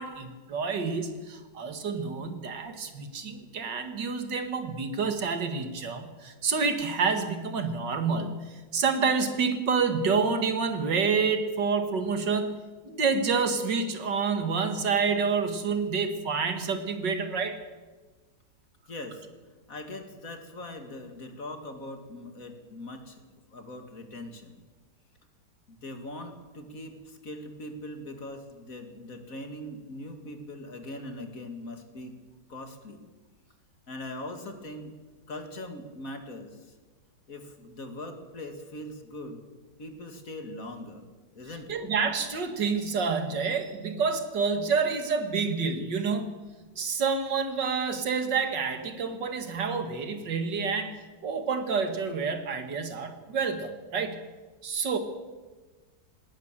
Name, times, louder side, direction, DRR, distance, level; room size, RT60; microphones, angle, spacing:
voice 1, 0.0-8.4 8.7-12.5 12.8-17.6 41.7-46.3 46.8-50.9 51.2-54.2 54.6-55.0, right 5 dB, 80° right, 8 dB, 2.5 m, -28 dB
voice 2, 18.9-19.3 19.7-23.2 23.5-24.6 25.7-32.2 32.5-33.0 33.9-34.9 35.3-36.8 37.3-39.4 39.8-41.1 41.3-41.8, left 1 dB, 50° left, 6 dB, 2.6 m, -41 dB
19.5 x 18.0 x 7.4 m, 1.3 s
omnidirectional pair, 1.9 m